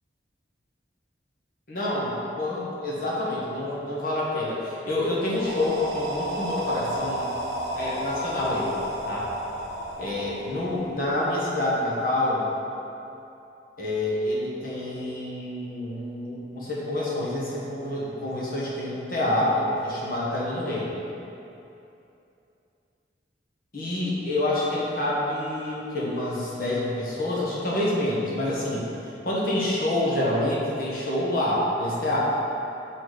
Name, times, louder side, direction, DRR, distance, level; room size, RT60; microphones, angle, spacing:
voice 1, 1.7-7.3 7.7-8.8 9.1-9.3 10.0-12.5 13.8-21.0 23.7-32.2, left 1 dB, 50° left, -6 dB, 1.3 m, -27 dB
sound 1, 5.2-11.1, right 1 dB, 60° right, 1.1 m, -32 dB
6.1 x 4.2 x 4.8 m, 2.8 s
head